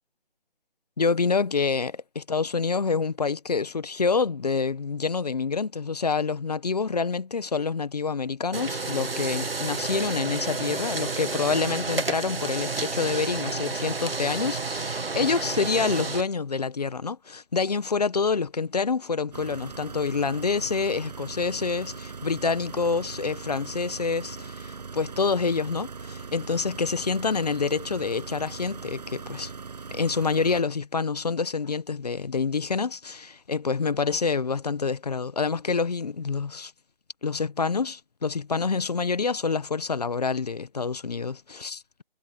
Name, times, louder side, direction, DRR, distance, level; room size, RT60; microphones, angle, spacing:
voice 1, 1.0-29.5 29.9-36.7 37.2-42.0, left 5 dB, 40° left, 1.4 m, -27 dB
sound 1, 8.5-16.2, right 3 dB, 75° right, 2.4 m, -30 dB
sound 2, 19.3-30.6, right 5 dB, 45° right, 7.9 m, -40 dB
figure-of-eight pair, 165°, 30 cm